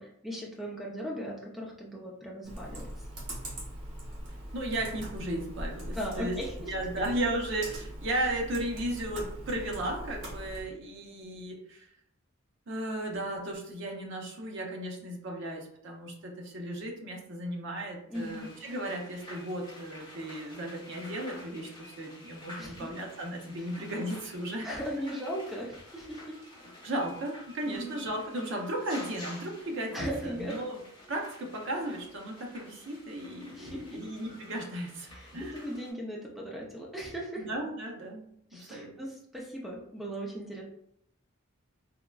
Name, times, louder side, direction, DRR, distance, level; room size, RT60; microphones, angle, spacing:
voice 1, 0.0-2.9 5.9-6.7 18.1-18.5 22.6-22.9 23.6-23.7 24.6-26.4 27.6-27.9 29.9-30.6 33.5-34.0 35.1-37.5 38.5-40.6, equal, ahead, -3 dB, 0.4 m, -38 dB
Computer keyboard, 2.4-10.6, right 1 dB, 75° right, 1.2 m, -41 dB
voice 2, 4.5-6.4 6.7-11.9 12.7-21.7 22.0-24.7 26.8-30.8 31.1-35.6 37.4-38.2 38.5-38.9, right 1 dB, 55° right, 1 dB, 0.6 m, -35 dB
sound 1, 18.1-35.9, left 1 dB, 20° left, 0.8 m, -50 dB
3.6 x 2.1 x 2.2 m, 0.71 s
head